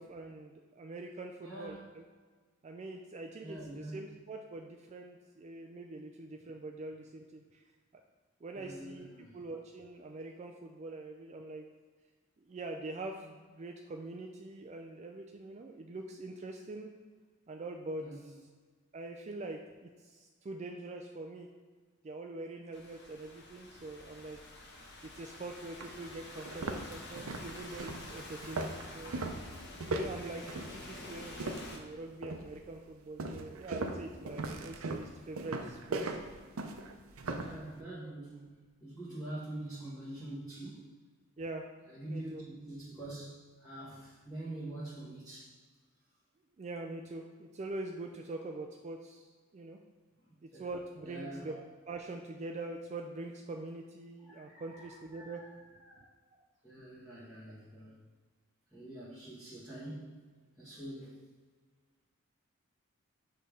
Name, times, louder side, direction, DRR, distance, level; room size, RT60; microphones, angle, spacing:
voice 1, 0.0-2.0 2.6-7.6 7.9-8.0 8.4-9.1 9.3-11.7 12.4-16.9 17.5-18.4 18.9-21.5 22.0-24.4 25.1-29.2 29.9-36.1 41.4-41.7 42.1-42.4 46.6-49.8 50.4-55.5 56.3-56.4, right 2 dB, 35° right, 3 dB, 0.3 m, -44 dB
voice 2, 1.4-1.9 3.4-4.1 8.5-9.4 18.0-18.3 37.3-41.0 41.9-45.5 50.5-50.7 51.0-51.5 54.2-55.6 55.9-56.1 56.6-58.0 58.7-60.2 60.6-61.2, right 1 dB, ahead, -13 dB, 1.6 m, -45 dB
Thunderstorm / Rain, 22.7-31.8, left 2 dB, 55° left, 1.1 m, -49 dB
sound 1, 25.2-25.3 25.8-25.9 26.4-31.9 32.2-32.6 33.2-37.6, right 2 dB, 85° right, 0.6 m, -38 dB
6.5 x 3.3 x 5.1 m, 1.5 s
head